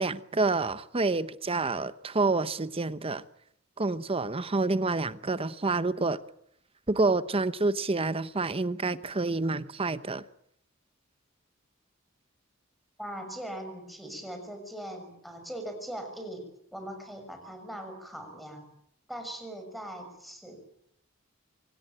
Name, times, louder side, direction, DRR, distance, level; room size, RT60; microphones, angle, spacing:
voice 1, 0.0-3.2 3.8-6.2 6.9-10.2, right 3 dB, 30° right, 0.9 m, -28 dB
voice 2, 13.0-16.4 16.7-18.6 19.1-20.6, right 1 dB, ahead, 6.1 m, -40 dB
25.5 x 17.5 x 8.9 m
head